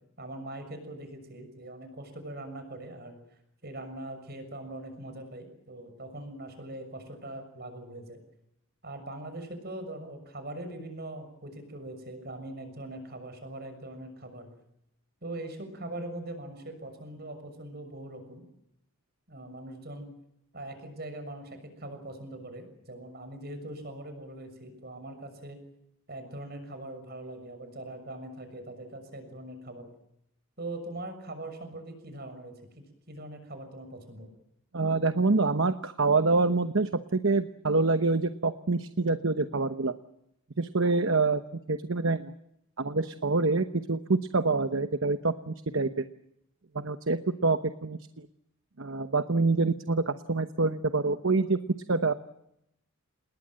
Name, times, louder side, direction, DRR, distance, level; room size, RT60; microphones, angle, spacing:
voice 1, 0.2-3.2 3.6-8.2 8.8-14.5 15.2-18.4 19.3-20.1 20.5-25.6 26.1-29.9 30.6-34.3, right 1 dB, 45° right, 8 dB, 6.5 m, -41 dB
voice 2, 34.7-39.9 40.6-41.4 41.7-42.3 42.8-46.0 46.7-48.0 48.8-51.6 51.9-52.1, right 3 dB, 65° right, 10 dB, 1.0 m, -26 dB
28.0 x 20.5 x 7.7 m, 0.80 s
head